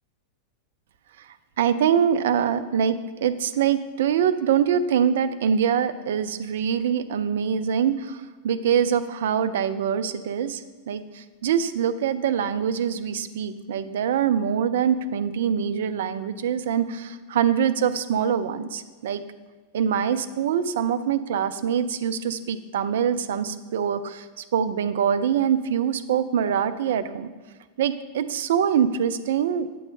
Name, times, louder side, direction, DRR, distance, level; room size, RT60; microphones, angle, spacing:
voice 1, 1.6-10.6 10.9-19.2 19.7-27.3 27.8-29.7, right 8 dB, 60° right, 13 dB, 0.3 m, -24 dB
8.4 x 3.1 x 6.4 m, 1.3 s
figure-of-eight pair, 90°, 0 cm